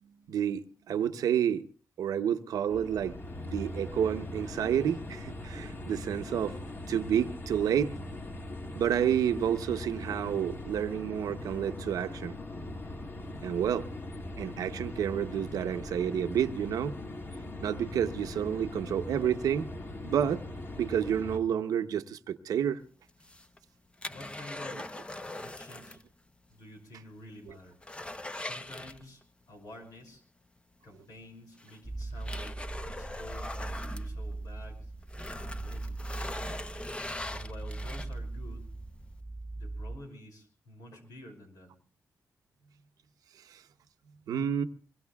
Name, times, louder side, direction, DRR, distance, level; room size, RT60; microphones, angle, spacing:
voice 1, 0.0-1.6 2.0-3.2 3.4-6.5 6.9-7.9 8.7-12.3 13.4-13.9 14.4-17.0 17.6-19.7 20.0-20.4 20.8-22.8 43.5-43.6 44.3-44.6, right 9 dB, 85° right, 0.8 m, -29 dB
sound 1, 2.7-21.4, left 1 dB, 40° left, 2.1 m, -41 dB
sound 2, 23.1-26.1 26.3-26.4 26.9-27.0 27.4-29.4 30.8-30.9 31.6-34.7 35.0-38.4 38.9-39.0, left 1 dB, 20° left, 0.8 m, -41 dB
voice 2, 24.1-26.0 26.5-27.8 28.4-29.2 29.5-30.2 30.8-32.6 32.9-34.9 35.3-36.7 37.3-38.7 39.6-41.7, left 1 dB, 85° left, 5.8 m, -49 dB
sound 3, 31.8-40.0, right 2 dB, ahead, 1.2 m, -39 dB
24.0 x 22.5 x 2.3 m
cardioid pair, 80°, 6 cm